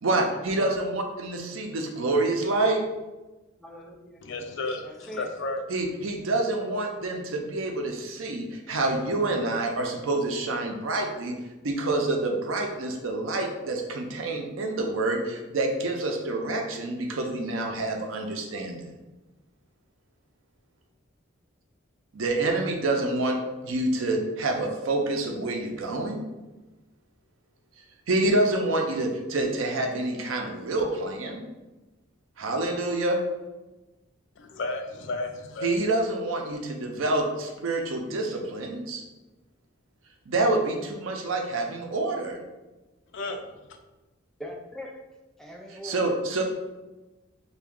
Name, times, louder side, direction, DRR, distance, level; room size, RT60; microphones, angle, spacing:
voice 1, 0.0-2.8 5.7-11.3 11.6-18.9 22.1-23.4 23.6-26.2 28.1-31.4 32.4-33.2 35.6-39.0 40.3-42.4 45.7-46.4, right 2 dB, 85° right, 3 dB, 0.6 m, -27 dB
voice 2, 3.6-4.2 4.8-5.3 44.4-45.0 45.4-46.0, equal, ahead, -1 dB, 0.4 m, -41 dB
voice 3, 4.2-5.6 34.4-35.3 35.5-35.7 43.1-43.4, left 2 dB, 65° left, 5 dB, 0.4 m, -32 dB
3.5 x 2.2 x 3.6 m, 1.1 s
head